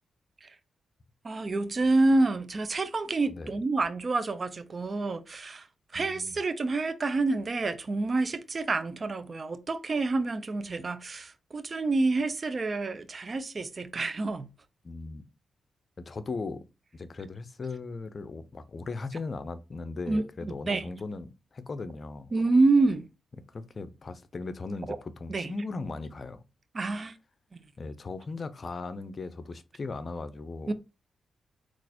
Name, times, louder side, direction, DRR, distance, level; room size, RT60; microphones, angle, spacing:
voice 1, 1.2-5.7 5.9-14.5 20.1-20.8 22.3-23.1 24.9-25.0 25.3-25.5 26.7-27.1 30.7-30.8, right 3 dB, 45° right, 0.5 m, -28 dB
voice 2, 5.9-6.4 14.8-15.3 16.1-16.6 16.9-22.3 23.3-26.4 27.8-30.7, left 3 dB, 50° left, 0.5 m, -38 dB
3.9 x 2.4 x 2.8 m
supercardioid pair, 45°, 0 cm